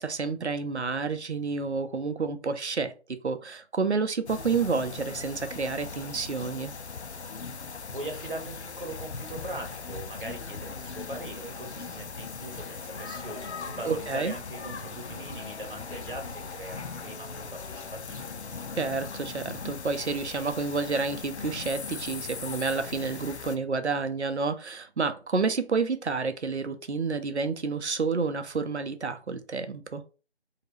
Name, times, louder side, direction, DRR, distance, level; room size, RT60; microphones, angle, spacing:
voice 1, 0.0-6.7 13.8-14.3 18.8-30.0, right 4 dB, 75° right, 0.6 m, -29 dB
sound 1, 4.3-23.6, left 5 dB, 80° left, 0.6 m, -39 dB
voice 2, 7.4-18.3, right 1 dB, 50° right, 1.0 m, -41 dB
Wind instrument woodwind instrument, 12.4-19.3, left 1 dB, 60° left, 0.9 m, -51 dB
2.9 x 2.9 x 3.0 m
figure-of-eight pair, 165°, 33 cm